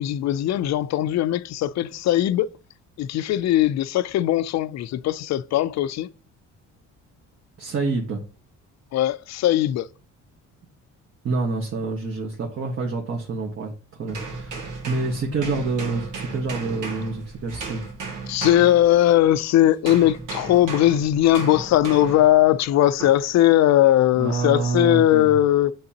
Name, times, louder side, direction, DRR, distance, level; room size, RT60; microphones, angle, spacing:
voice 1, 0.0-2.5 3.0-6.1 8.9-9.9 18.3-25.7, left 13 dB, 60° left, 0.5 m, -19 dB
voice 2, 7.6-8.2 11.2-17.8 24.1-25.3, right 3 dB, 45° right, 1.5 m, -27 dB
sound 1, 14.1-19.4 19.9-22.4 23.0-23.3, right 4 dB, 80° right, 2.1 m, -35 dB
9.5 x 3.7 x 2.9 m
cardioid pair, 125°, 31 cm